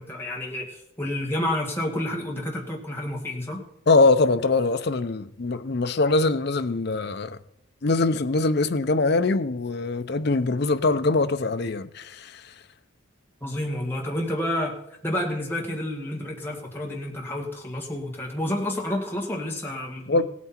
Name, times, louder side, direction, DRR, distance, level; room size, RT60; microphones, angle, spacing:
voice 1, 0.0-3.6 13.4-14.8 15.0-20.2, left 1 dB, 10° left, 2.0 m, -29 dB
voice 2, 3.9-7.4 7.8-12.5 20.1-20.2, left 3 dB, 50° left, 0.6 m, -23 dB
17.0 x 8.4 x 4.4 m
head